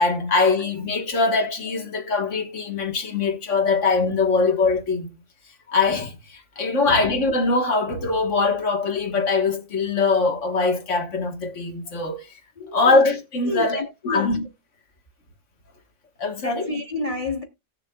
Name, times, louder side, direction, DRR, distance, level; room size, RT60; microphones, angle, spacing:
voice 1, 0.0-5.1 5.7-12.3 12.7-14.4 16.2-16.7, left 3 dB, 80° left, 1.8 m, -22 dB
voice 2, 12.6-13.0 13.4-14.3 16.4-17.4, left 3 dB, 30° left, 1.2 m, -29 dB
18.0 x 6.7 x 2.3 m
omnidirectional pair, 1.2 m